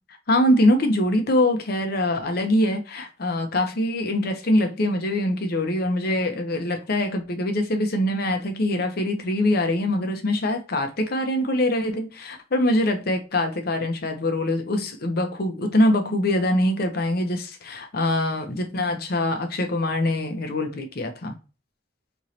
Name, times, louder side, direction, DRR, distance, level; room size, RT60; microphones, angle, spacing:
voice 1, 0.3-21.4, left 1 dB, 60° left, 0.7 m, -23 dB
4.4 x 3.0 x 2.7 m
head